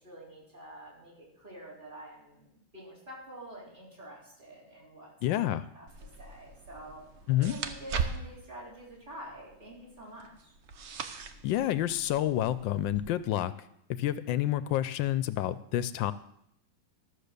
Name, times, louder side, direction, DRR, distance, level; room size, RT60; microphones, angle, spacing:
voice 1, 0.0-5.9 6.2-7.0 7.4-10.5, right 1 dB, 25° right, -4 dB, 4.3 m, -48 dB
voice 2, 5.2-5.6 7.3-7.5 11.4-13.5 13.9-16.1, left 13 dB, 75° left, 14 dB, 1.2 m, -29 dB
sound 1, 5.9-13.0, right 5 dB, 70° right, 0.6 m, -40 dB
13.5 x 6.6 x 6.6 m, 0.73 s
omnidirectional pair, 2.2 m